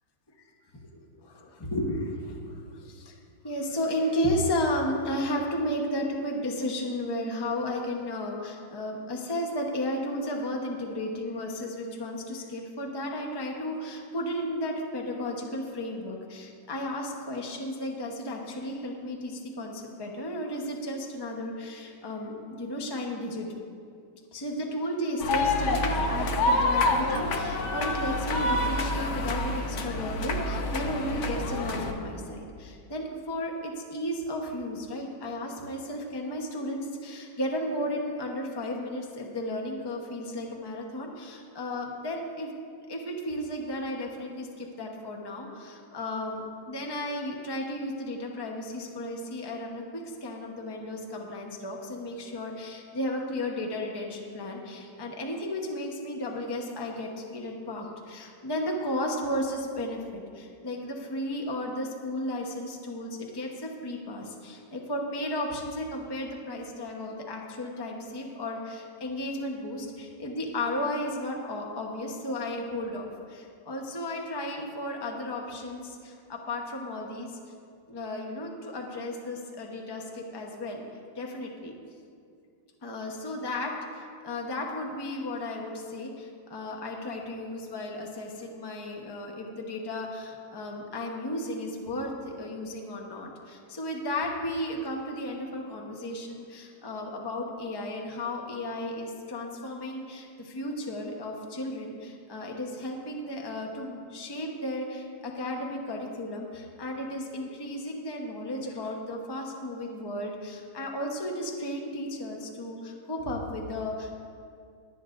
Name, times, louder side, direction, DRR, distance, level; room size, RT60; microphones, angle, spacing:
voice 1, 1.3-3.1 3.4-23.5 24.3-42.5 42.9-77.4 77.9-80.8 81.1-81.7 82.8-114.2, left 1 dB, 20° left, 0 dB, 0.7 m, -34 dB
sound 1, 25.2-31.9, left 2 dB, 55° left, 0.8 m, -27 dB
22.5 x 8.3 x 2.6 m, 2.3 s
omnidirectional pair, 2.1 m